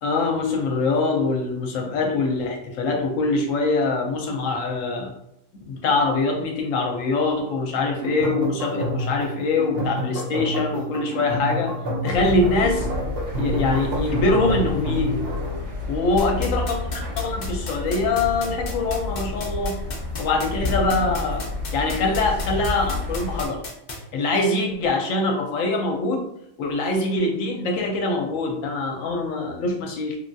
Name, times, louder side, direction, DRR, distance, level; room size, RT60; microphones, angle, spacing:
voice 1, 0.0-5.1 5.7-11.8 12.0-12.9 13.4-15.3 15.8-16.8 17.2-19.8 20.2-21.4 21.7-23.6 23.9-26.3 26.6-30.2, left 3 dB, 75° left, 2 dB, 1.0 m, -23 dB
sound 1, 8.0-15.6, equal, 55° right, 0.9 m, -29 dB
sound 2, 12.1-23.5, left 3 dB, 70° right, 1.6 m, -30 dB
sound 3, 16.2-23.9, left 3 dB, 50° left, 0.6 m, -33 dB
3.1 x 2.3 x 2.6 m, 0.78 s
omnidirectional pair, 1.4 m